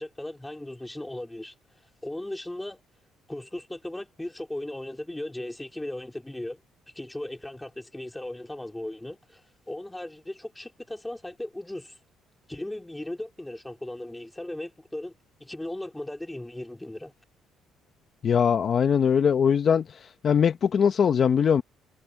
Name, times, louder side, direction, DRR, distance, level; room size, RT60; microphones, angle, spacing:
voice 1, 0.0-1.5 2.0-2.8 3.3-6.6 6.9-12.0 12.5-15.1 15.4-17.1, left 1 dB, 5° left, 2.4 m, -37 dB
voice 2, 18.2-19.8 20.2-21.6, left 7 dB, 40° left, 0.9 m, -21 dB
cardioid pair, 125°, 0 cm